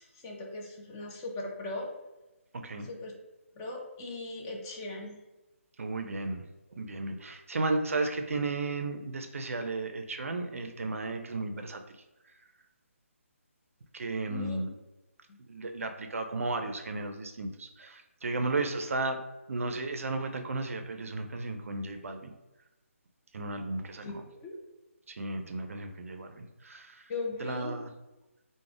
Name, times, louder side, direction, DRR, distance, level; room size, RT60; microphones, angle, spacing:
voice 1, 0.0-1.9 2.8-3.1 3.6-5.2 14.3-14.6 15.3-15.4 24.0-24.6 27.1-27.8, left 2 dB, 15° left, -1 dB, 0.3 m, -39 dB
voice 2, 5.8-6.4 6.8-11.8 13.9-14.7 15.4-19.2 19.5-22.3 23.3-24.1 25.1-27.1 27.4-27.9, right 3 dB, 70° right, 6 dB, 0.4 m, -34 dB
2.4 x 2.0 x 3.2 m, 1.0 s
figure-of-eight pair, 160°, 8 cm